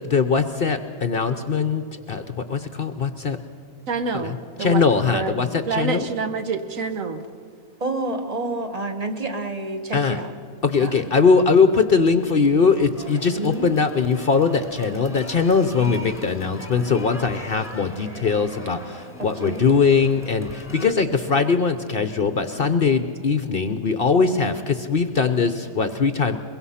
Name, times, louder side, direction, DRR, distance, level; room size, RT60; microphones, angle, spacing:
voice 1, 0.0-3.4 4.1-6.1 9.9-10.2 10.6-26.4, left 5 dB, 50° left, 10 dB, 0.9 m, -21 dB
voice 2, 3.9-4.8 5.1-7.3, right 4 dB, 65° right, 8 dB, 1.5 m, -27 dB
voice 3, 7.8-10.3 10.8-11.1 13.3-13.7 15.8-15.9 19.2-19.7, right 2 dB, 30° right, 6 dB, 1.4 m, -29 dB
sound 1, 13.0-20.9, equal, 10° left, 1.7 m, -41 dB
22.5 x 22.5 x 5.7 m, 2.4 s
omnidirectional pair, 1.5 m